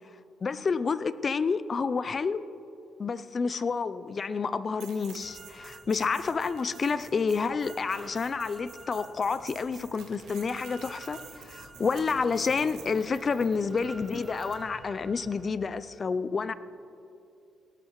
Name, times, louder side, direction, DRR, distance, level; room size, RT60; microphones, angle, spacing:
voice 1, 0.4-2.4 3.0-16.5, left 5 dB, 40° left, 15 dB, 0.4 m, -29 dB
sound 1, 4.8-14.6, right 8 dB, 90° right, 1.5 m, -51 dB
Drill, 5.2-15.5, right 2 dB, 20° right, 0.6 m, -50 dB
sound 2, 9.3-15.6, right 1 dB, 75° left, 2.3 m, -57 dB
19.0 x 12.0 x 3.1 m, 2.7 s
cardioid pair, 90°, 0 cm